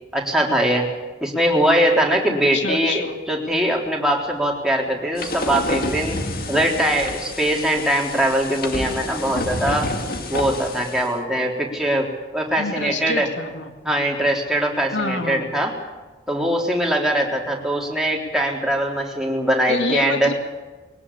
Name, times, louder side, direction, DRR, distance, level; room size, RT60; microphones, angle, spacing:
voice 1, 0.1-0.9 1.2-6.2 6.5-9.9 10.3-13.3 13.9-15.7 16.3-20.3, right 1 dB, 5° right, -2 dB, 3.6 m, -21 dB
voice 2, 2.3-3.1 12.6-13.7 14.9-15.5 19.7-20.3, left 3 dB, 75° left, 5 dB, 2.3 m, -27 dB
sound 1, 5.2-11.1, left 2 dB, 50° left, 2.2 m, -29 dB
22.0 x 18.0 x 8.5 m, 1.2 s
head